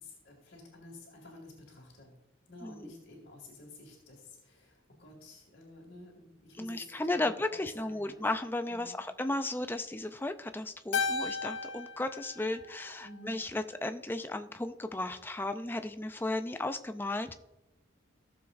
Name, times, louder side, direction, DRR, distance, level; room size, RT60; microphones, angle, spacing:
voice 1, 0.0-2.2 2.5-8.1 8.7-9.0 13.0-13.4, left 2 dB, 50° left, -5 dB, 2.2 m, -51 dB
voice 2, 2.6-2.9 6.6-17.4, left 2 dB, 10° left, 8 dB, 0.4 m, -35 dB
Keyboard (musical), 10.9-13.4, left 5 dB, 75° left, 0.9 m, -35 dB
16.0 x 7.1 x 2.6 m, 0.94 s
head